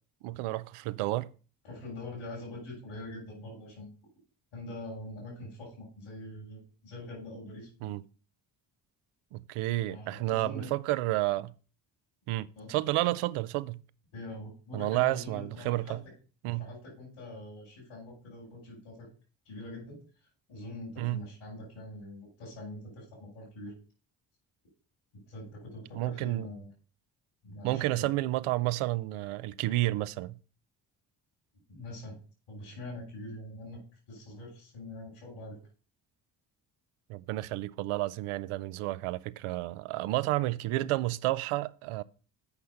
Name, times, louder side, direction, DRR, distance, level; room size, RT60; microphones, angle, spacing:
voice 1, 0.2-1.3 7.8-8.0 9.3-11.5 12.3-13.8 14.7-16.0 16.4-16.7 21.0-21.2 25.9-26.5 27.6-30.4 37.1-42.0, right 18 dB, 80° right, 0.7 m, -31 dB
voice 2, 1.6-3.9 4.5-7.9 9.9-10.7 12.6-12.7 14.1-16.1 16.5-19.1 19.5-20.0 20.5-23.7 25.1-26.7 27.4-28.1 31.7-32.2 32.5-33.8 34.1-35.6, left 1 dB, 75° left, 5.7 m, -44 dB
8.3 x 5.6 x 6.7 m
supercardioid pair, 50°, 50 cm